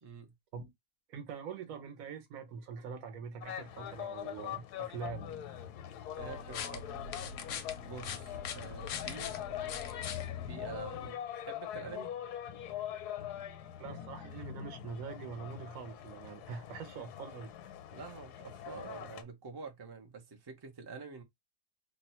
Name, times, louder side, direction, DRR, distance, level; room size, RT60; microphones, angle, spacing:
voice 1, 0.0-0.3 6.2-7.2 7.8-9.4 10.5-11.2 11.5-12.1 17.9-21.2, right 5 dB, 30° right, 0.4 m, -47 dB
voice 2, 1.1-5.3 13.8-17.5, right 6 dB, 65° right, 1.1 m, -44 dB
sound 1, 3.4-19.2, left 10 dB, 85° left, 1.1 m, -43 dB
sound 2, 6.2-11.1, left 7 dB, 65° left, 0.8 m, -42 dB
2.8 x 2.2 x 4.1 m
omnidirectional pair, 1.7 m